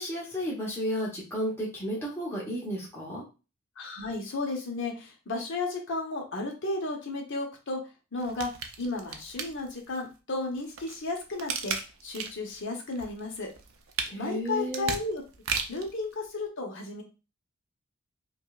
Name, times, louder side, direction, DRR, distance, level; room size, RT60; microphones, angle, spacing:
voice 1, 0.0-3.2 14.1-14.9, equal, 10° left, -6 dB, 0.9 m, -33 dB
voice 2, 3.8-7.8 8.1-8.5 8.8-11.7 12.0-13.5 14.1-15.2 15.7-17.0, left 2 dB, 60° left, 1 dB, 0.9 m, -33 dB
sound 1, 8.2-10.0 10.5-12.5 12.9-15.9 16.5-16.6, right 6 dB, 70° right, 0.6 m, -35 dB
5.1 x 2.3 x 2.3 m, 0.31 s
head